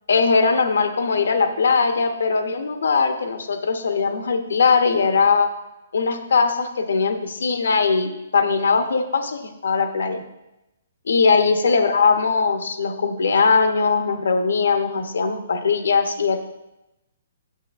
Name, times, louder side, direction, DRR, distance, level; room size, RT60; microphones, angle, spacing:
voice 1, 0.1-5.5 5.9-10.2 11.1-16.4, left 5 dB, 80° left, 7 dB, 0.7 m, -20 dB
8.2 x 7.1 x 2.4 m, 0.93 s
hypercardioid pair, 155°, 0 cm